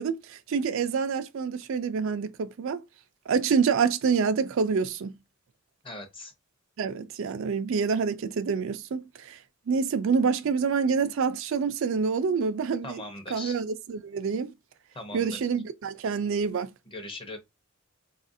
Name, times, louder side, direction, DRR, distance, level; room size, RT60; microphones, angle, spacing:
voice 1, 0.0-2.8 3.3-5.1 6.8-9.4 9.7-13.0 13.3-14.5 15.1-16.7, right 5 dB, 65° right, 0.4 m, -27 dB
voice 2, 5.8-6.3 12.8-13.6 14.9-15.4 16.9-17.4, left 2 dB, 25° left, 0.7 m, -39 dB
4.1 x 2.4 x 2.6 m
head